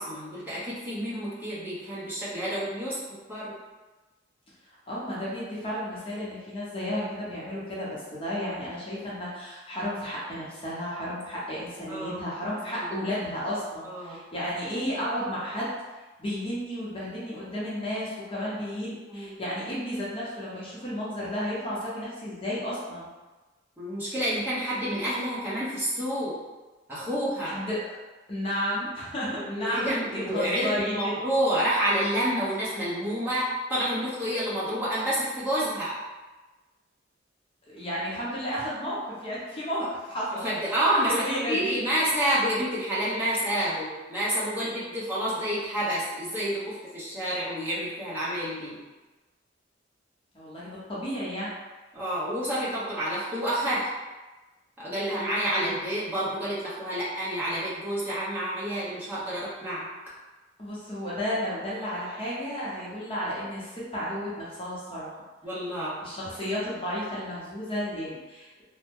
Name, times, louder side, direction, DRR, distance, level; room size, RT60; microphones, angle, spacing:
voice 1, 0.0-3.0 3.3-3.5 11.9-12.3 12.7-13.0 13.8-14.2 19.1-19.4 23.8-26.4 26.9-27.5 29.3-35.9 40.4-41.1 41.5-48.8 51.9-53.9 54.8-59.9 65.4-65.9, right 1 dB, 10° right, -10 dB, 0.9 m, -29 dB
voice 2, 4.7-15.7 16.2-23.1 27.4-28.0 28.3-31.1 37.7-40.4 41.1-41.7 50.3-51.5 60.6-65.2 66.0-68.6, equal, 30° left, -7 dB, 0.8 m, -32 dB
2.9 x 2.1 x 3.5 m, 1.2 s
head